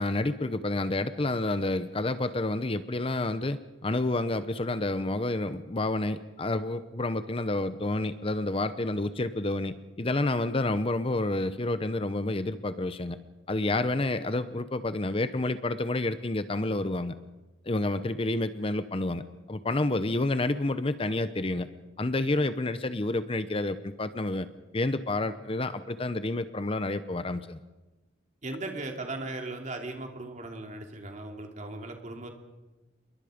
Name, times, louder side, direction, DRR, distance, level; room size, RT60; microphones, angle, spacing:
voice 1, 0.0-13.2 13.5-17.1 17.7-19.2 19.5-21.7 22.0-24.5 24.7-27.6, left 2 dB, 30° left, 12 dB, 0.8 m, -29 dB
voice 2, 28.4-32.3, right 2 dB, 40° right, 3 dB, 2.9 m, -37 dB
28.5 x 22.0 x 5.2 m, 1.1 s
head